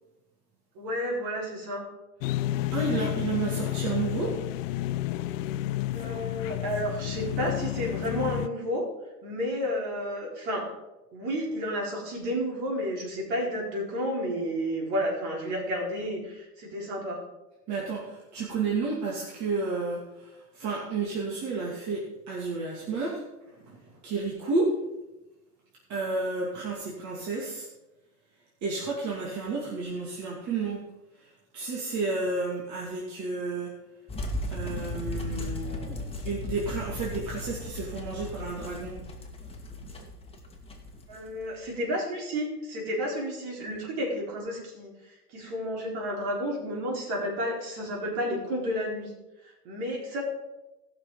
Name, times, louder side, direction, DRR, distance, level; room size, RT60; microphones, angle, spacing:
voice 1, 0.8-1.9 5.9-8.8 9.2-10.7 11.1-17.2 41.1-49.1 49.4-50.2, equal, 50° right, -1 dB, 4.3 m, -31 dB
sound 1, 2.2-8.5, left 15 dB, 55° left, 0.6 m, -31 dB
voice 2, 2.7-4.4 17.7-23.3 23.5-24.8 25.9-27.7 28.6-30.8 31.1-33.7 34.5-39.0 39.8-39.9, right 3 dB, 35° right, -4 dB, 2.6 m, -31 dB
sound 2, 34.1-41.7, left 1 dB, 10° left, 1.9 m, -36 dB
18.5 x 6.3 x 4.0 m, 1.0 s
hypercardioid pair, 100°, 46 cm